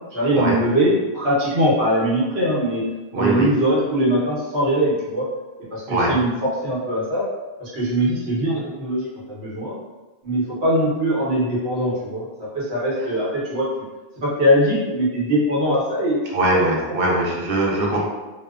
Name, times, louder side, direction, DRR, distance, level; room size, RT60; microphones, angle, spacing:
voice 1, 0.1-2.8 3.1-5.3 5.7-6.3 6.6-7.3 7.6-9.8 10.2-13.7 14.2-16.2 16.5-16.6, equal, 85° right, -7 dB, 1.1 m, -21 dB
voice 2, 3.1-3.5 5.9-6.1 16.3-18.0, right 2 dB, 65° right, -2 dB, 0.7 m, -21 dB
2.7 x 2.1 x 2.3 m, 1.2 s
omnidirectional pair, 1.0 m